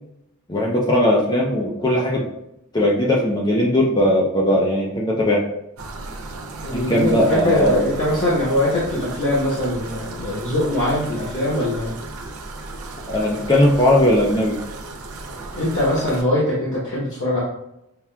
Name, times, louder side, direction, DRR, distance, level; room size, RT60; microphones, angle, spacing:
voice 1, 0.5-2.3 2.7-5.4 6.7-8.0 13.1-14.6, left 1 dB, 20° left, -2 dB, 0.4 m, -18 dB
sound 1, 5.8-16.2, right 2 dB, 70° right, 0.5 m, -35 dB
voice 2, 6.6-11.9 15.5-17.4, left 1 dB, 55° left, -9 dB, 1.0 m, -22 dB
5.6 x 2.3 x 2.2 m, 0.84 s
head